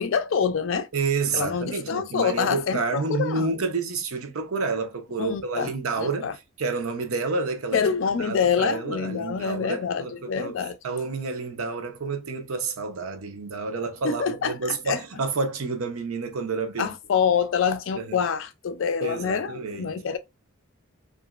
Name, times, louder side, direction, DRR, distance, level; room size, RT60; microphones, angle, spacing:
voice 1, 0.0-0.9 1.3-3.5 5.2-5.7 6.0-6.3 7.7-10.8 14.0-15.0 16.8-20.2, left 6 dB, 65° left, 0.3 m, -26 dB
voice 2, 0.9-7.8 8.2-10.6 10.8-16.9 18.0-18.2 19.0-20.0, right 4 dB, 85° right, 0.6 m, -29 dB
2.9 x 2.4 x 2.3 m
head